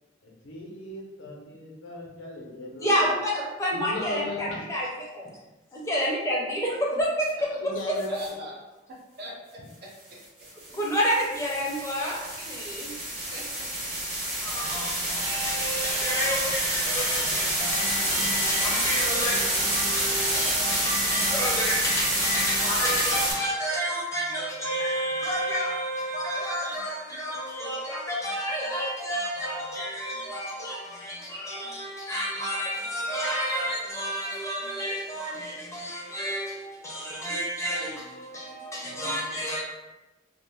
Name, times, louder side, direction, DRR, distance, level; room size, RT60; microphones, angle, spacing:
voice 1, 0.2-3.1 3.7-4.7 7.5-8.4, left 2 dB, 85° left, -1 dB, 0.6 m, -38 dB
voice 2, 2.8-4.9 5.1-5.3 5.7-8.2 10.7-12.9 14.4-39.6, equal, 15° left, -4 dB, 0.6 m, -30 dB
sound 1, 8.0-8.3 10.4-23.3, right 1 dB, 30° right, 1.1 m, -28 dB
voice 3, 8.1-8.6 9.2-10.5 11.8-11.9 12.4-12.5 13.0-13.9, equal, 55° right, -3 dB, 0.6 m, -43 dB
2.4 x 2.1 x 3.3 m, 1.0 s
head